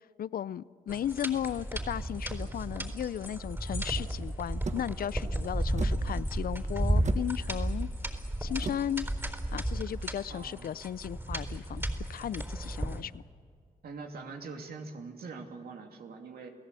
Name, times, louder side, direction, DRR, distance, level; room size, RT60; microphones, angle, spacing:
voice 1, 0.2-7.9 8.4-9.1 9.5-11.8 12.1-13.2, left 10 dB, 75° left, 19 dB, 0.5 m, -35 dB
sound 1, 0.9-13.0, right 1 dB, 15° right, 4.2 m, -33 dB
sound 2, 4.6-10.2, right 4 dB, 50° right, 1.3 m, -43 dB
voice 2, 10.3-10.7 13.8-16.5, right 4 dB, 85° right, 3 dB, 2.7 m, -43 dB
29.5 x 17.5 x 8.3 m, 2.2 s
cardioid pair, 60°, 15 cm